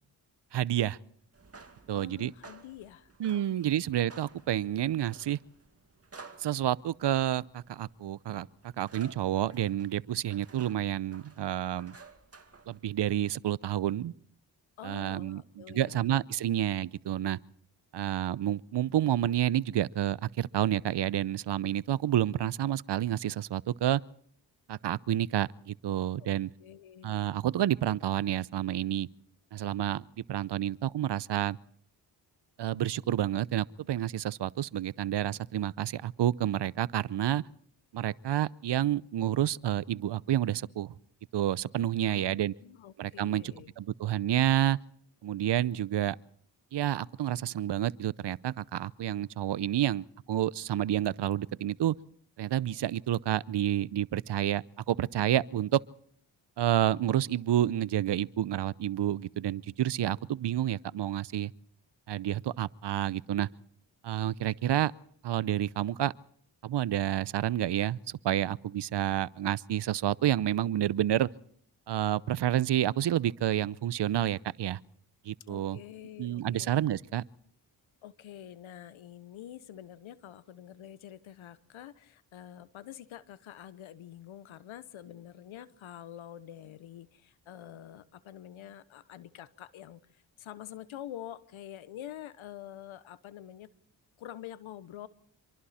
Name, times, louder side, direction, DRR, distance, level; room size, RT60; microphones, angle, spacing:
voice 1, 0.5-1.0 1.9-2.3 3.2-5.4 6.4-8.5 8.8-12.0 12.7-14.1 14.8-17.4 17.9-24.0 24.7-26.5 27.0-29.1 29.5-31.6 32.6-37.4 37.9-40.9 41.3-42.5 43.0-44.8 45.2-46.2 46.7-51.9 52.4-55.8 56.6-61.5 62.1-63.5 64.0-64.9 65.2-66.1 66.6-71.3 71.9-74.8 75.3-75.8 76.2-77.2, right 12 dB, 60° right, 0.7 m, -29 dB
sound 1, 1.3-13.2, right 4 dB, 30° right, 2.3 m, -54 dB
voice 2, 1.9-3.7 6.6-6.8 14.8-16.1 26.2-27.2 42.1-43.7 75.5-76.7 78.0-93.7 94.2-95.1, left 11 dB, 80° left, 1.2 m, -47 dB
26.5 x 23.5 x 4.3 m
supercardioid pair, 45°, 48 cm